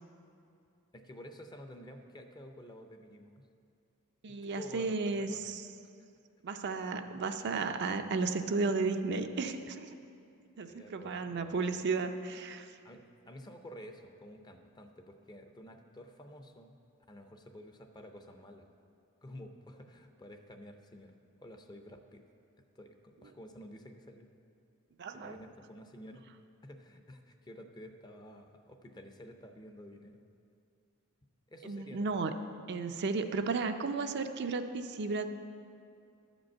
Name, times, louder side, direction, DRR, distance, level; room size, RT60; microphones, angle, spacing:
voice 1, 0.9-3.5 4.3-5.5 10.6-11.8 12.8-16.8 17.1-18.7 19.2-21.1 21.4-22.2 22.7-24.3 25.1-26.3 26.6-30.2 31.5-32.2, equal, 20° left, 5 dB, 0.6 m, -50 dB
voice 2, 4.2-5.3 6.4-9.9 10.6-12.7 25.0-25.3 31.6-32.3 32.7-35.3, right 4 dB, 50° right, 7 dB, 0.5 m, -33 dB
11.5 x 5.2 x 7.1 m, 2.5 s
head